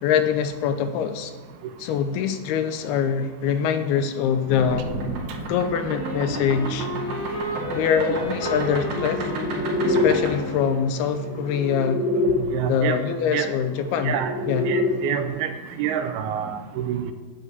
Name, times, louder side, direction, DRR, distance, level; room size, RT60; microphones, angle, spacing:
voice 1, 0.0-1.3 1.8-4.9 5.4-6.9 7.7-9.3 9.8-12.0 12.7-14.2 14.5-14.7, left 7 dB, 80° left, 9 dB, 2.5 m, -24 dB
sound 1, 4.5-12.4 13.6-14.9, left 1 dB, 65° right, 4.0 m, -28 dB
Wind instrument woodwind instrument, 5.9-11.0, equal, 10° right, 1.5 m, -32 dB
voice 2, 12.5-13.0 13.3-13.5 14.0-14.3 14.7-15.5 15.8-17.1, right 9 dB, 80° right, 8 dB, 2.4 m, -27 dB
11.0 x 4.7 x 8.1 m, 1.4 s
omnidirectional pair, 4.7 m